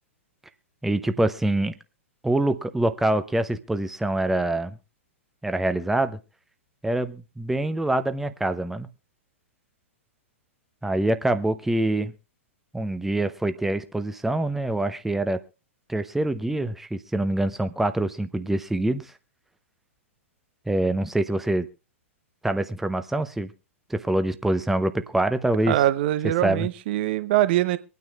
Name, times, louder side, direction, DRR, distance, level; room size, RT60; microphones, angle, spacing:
voice 1, 0.8-1.7 2.2-4.8 5.4-6.2 6.8-8.9 10.8-12.1 12.7-15.4 15.9-19.1 20.7-21.7 22.4-23.5 23.9-25.8 26.4-26.7, right 1 dB, 5° right, 10 dB, 0.8 m, -25 dB
voice 2, 25.7-27.8, right 14 dB, 50° right, 13 dB, 1.0 m, -23 dB
24.5 x 9.4 x 2.4 m, 0.32 s
figure-of-eight pair, 105°, 7 cm